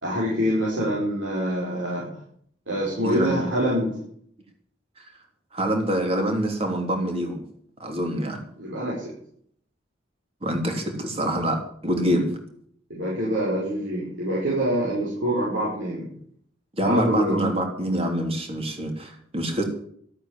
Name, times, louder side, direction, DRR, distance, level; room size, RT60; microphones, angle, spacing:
voice 1, 0.0-2.1 2.7-4.0 8.6-9.1 12.9-16.1 16.8-17.4, equal, 85° right, -6 dB, 5.7 m, -25 dB
voice 2, 3.0-3.4 5.0-5.1 5.5-7.4 7.8-8.4 10.4-12.4 16.7-19.6, right 1 dB, 30° right, 4 dB, 3.2 m, -25 dB
13.0 x 9.0 x 9.0 m, 0.63 s
head